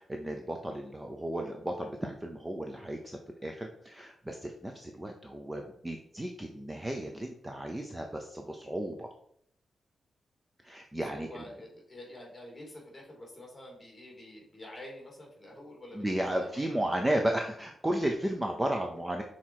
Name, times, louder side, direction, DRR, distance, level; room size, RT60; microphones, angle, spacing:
voice 1, 0.0-9.1 10.6-11.4 15.9-19.2, right 1 dB, 10° right, 3 dB, 0.5 m, -34 dB
voice 2, 11.0-16.8, left 1 dB, 15° left, -1 dB, 2.5 m, -48 dB
5.8 x 4.3 x 4.6 m, 0.69 s
wide cardioid pair, 160°, 0 cm